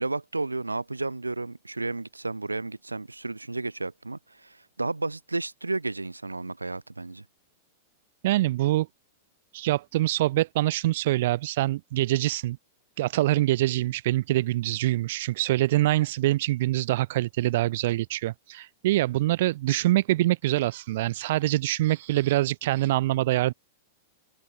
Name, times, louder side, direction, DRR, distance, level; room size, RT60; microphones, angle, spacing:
voice 1, 0.0-7.2, right 3 dB, 85° right, 1.2 m, -32 dB
voice 2, 8.2-8.9 9.5-12.6 13.0-23.5, right 16 dB, 55° right, 0.6 m, -25 dB
open air
figure-of-eight pair, 95°, 0 cm